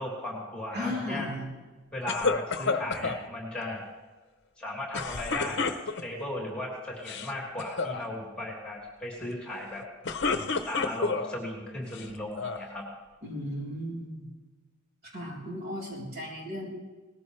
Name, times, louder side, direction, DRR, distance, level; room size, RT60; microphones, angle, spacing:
voice 1, 0.0-1.3 1.9-3.9 4.6-5.7 6.0-9.8 10.7-12.9, left 1 dB, 5° left, -3 dB, 3.3 m, -36 dB
voice 2, 0.7-1.5 13.2-14.3 15.0-16.7, left 1 dB, 50° right, -3 dB, 3.9 m, -35 dB
sound 1, 2.1-3.2 4.9-6.2 6.9-7.3 7.6-8.0 9.8-11.3 11.9-12.7, left 4 dB, 55° left, 0.8 m, -30 dB
19.0 x 14.5 x 3.3 m, 1.3 s
head